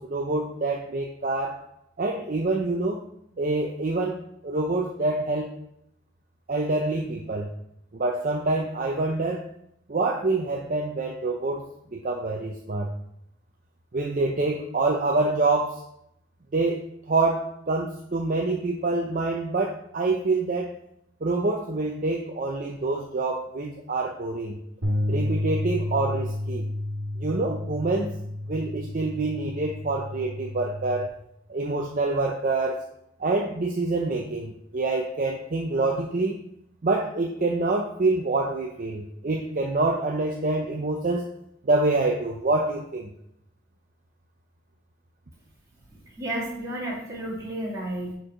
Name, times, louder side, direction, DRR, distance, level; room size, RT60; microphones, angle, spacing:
voice 1, 0.0-1.6 2.0-3.0 3.4-5.5 6.5-7.5 7.9-9.5 9.9-11.7 11.9-12.9 13.9-15.8 16.5-16.8 17.1-20.7 21.2-24.6 25.1-26.7 27.2-28.1 28.5-31.1 31.5-32.8 33.2-36.4 36.8-41.3 41.6-43.1, right 2 dB, 40° right, 0 dB, 0.5 m, -26 dB
sound 1, 24.8-31.1, left 1 dB, 75° right, 1.5 m, -31 dB
voice 2, 46.2-48.1, right 1 dB, 15° right, -7 dB, 2.1 m, -32 dB
4.8 x 4.6 x 4.9 m, 0.76 s
head